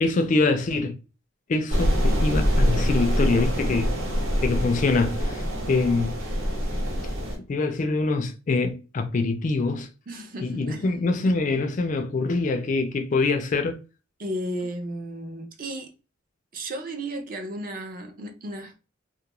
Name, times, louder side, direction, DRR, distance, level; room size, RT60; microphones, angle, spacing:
voice 1, 0.0-1.0 1.5-3.9 4.4-6.1 7.5-9.9 10.4-13.8, left 3 dB, 40° left, 0.3 m, -24 dB
sound 1, 1.7-7.4, equal, 80° right, 1.0 m, -24 dB
voice 2, 10.1-11.0 14.2-15.9 16.5-18.7, right 1 dB, 45° right, 0.5 m, -34 dB
2.3 x 2.2 x 2.8 m
head